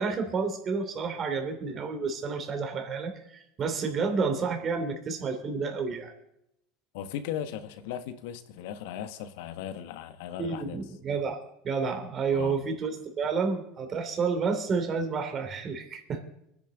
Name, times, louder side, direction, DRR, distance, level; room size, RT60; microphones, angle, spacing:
voice 1, 0.0-6.1 10.4-11.4 11.6-12.9 13.2-16.2, right 5 dB, 40° right, 3.0 m, -30 dB
voice 2, 6.9-10.8 12.3-12.7, left 10 dB, 75° left, 1.2 m, -37 dB
24.5 x 10.5 x 3.9 m
supercardioid pair, 95°, 0 cm